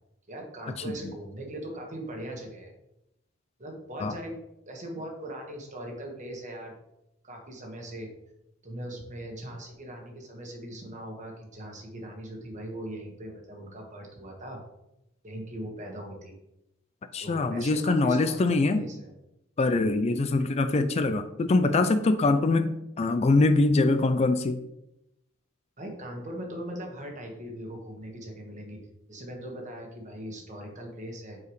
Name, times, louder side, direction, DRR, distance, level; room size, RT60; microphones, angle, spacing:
voice 1, 0.3-2.7 3.6-4.3 4.7-6.7 7.2-8.1 8.6-14.6 15.2-16.3 17.2-19.1 25.8-28.8 29.1-31.4, right 1 dB, 35° right, 0 dB, 1.4 m, -40 dB
voice 2, 17.1-18.8 19.6-24.6, left 3 dB, 30° left, 10 dB, 0.3 m, -23 dB
8.2 x 4.7 x 3.1 m, 0.87 s
head